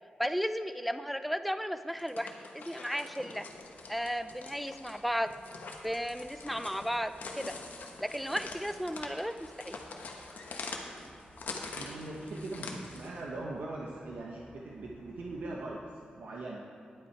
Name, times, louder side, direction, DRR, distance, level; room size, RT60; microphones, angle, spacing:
voice 1, 0.2-3.5 3.9-5.3 5.8-7.5 8.0-9.8, equal, ahead, 10 dB, 0.3 m, -34 dB
sound 1, 1.9-13.2, left 3 dB, 70° left, 1.1 m, -45 dB
sound 2, 3.5-15.7, equal, 35° right, 2.3 m, -60 dB
voice 2, 11.7-15.8 16.1-16.6, right 2 dB, 75° right, -3 dB, 1.0 m, -40 dB
10.5 x 8.6 x 4.6 m, 2.5 s
wide cardioid pair, 155°, 3 cm